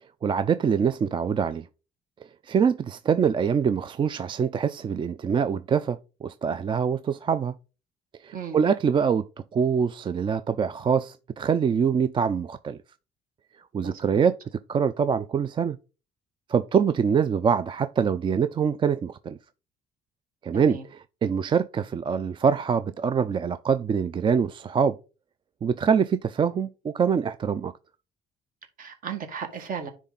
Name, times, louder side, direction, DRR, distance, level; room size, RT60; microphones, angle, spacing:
voice 1, 0.2-1.7 2.5-7.5 8.2-9.3 9.5-12.8 13.7-14.3 14.7-15.8 16.5-19.4 20.4-25.0 25.6-27.7, right 7 dB, 30° right, 0.3 m, -24 dB
voice 2, 13.8-14.3 20.5-20.8 28.8-29.9, right 6 dB, 55° right, 1.6 m, -35 dB
9.9 x 3.6 x 3.9 m
cardioid pair, 110°, 17 cm